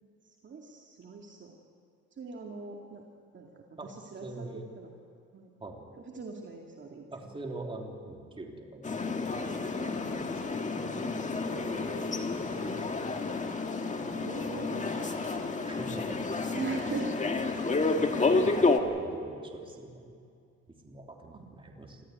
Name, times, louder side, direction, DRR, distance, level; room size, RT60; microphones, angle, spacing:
voice 1, 0.2-1.6 2.1-3.0 3.3-4.9 5.3-5.5 6.1-7.3 11.0-11.2 11.5-12.0 13.2-13.4 14.0-15.7 16.5-17.2 21.3-21.5, right 4 dB, 40° right, 0 dB, 2.4 m, -41 dB
voice 2, 4.2-4.7 5.6-5.8 7.1-8.9 9.3-10.3 11.7-11.8 12.1-12.5 14.4-14.9 15.6-16.5 16.9-17.0 17.4-17.7 18.3-20.2 20.7-22.0, right 2 dB, 15° right, 1 dB, 3.4 m, -44 dB
sound 1, 8.8-18.8, left 3 dB, 25° left, 1.8 m, -30 dB
26.5 x 14.5 x 9.6 m, 2.3 s
cardioid pair, 110°, 30 cm